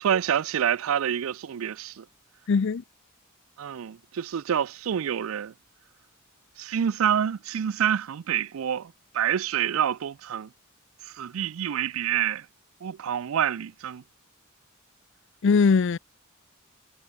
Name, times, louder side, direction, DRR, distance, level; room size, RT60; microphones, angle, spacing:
voice 1, 0.0-2.0 3.6-5.5 6.6-10.5 11.0-12.5 12.8-14.0, right 9 dB, 75° right, 0.4 m, -27 dB
voice 2, 2.5-2.8 15.4-16.0, left 5 dB, 60° left, 0.5 m, -20 dB
head